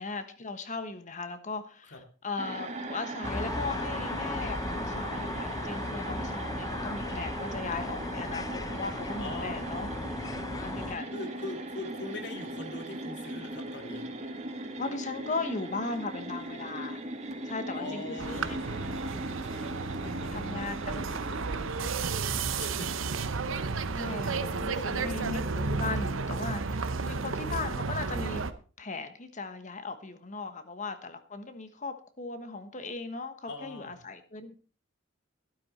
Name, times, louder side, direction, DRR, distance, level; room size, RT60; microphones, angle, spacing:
voice 1, 0.0-9.9 10.6-11.1 14.8-17.0 17.4-18.6 20.3-21.1 23.9-28.4 28.8-34.5, left 3 dB, 40° left, 10 dB, 1.3 m, -37 dB
sound 1, 2.4-21.7, right 1 dB, 35° right, 2.1 m, -39 dB
sound 2, 3.2-11.0, left 2 dB, 20° left, 0.6 m, -36 dB
voice 2, 9.2-9.6 10.7-14.0 17.8-22.9 33.5-33.9, left 2 dB, 60° left, 5 dB, 2.4 m, -43 dB
sound 3, 18.2-28.5, right 4 dB, 90° right, 0.9 m, -32 dB
12.5 x 12.5 x 4.3 m, 0.38 s
head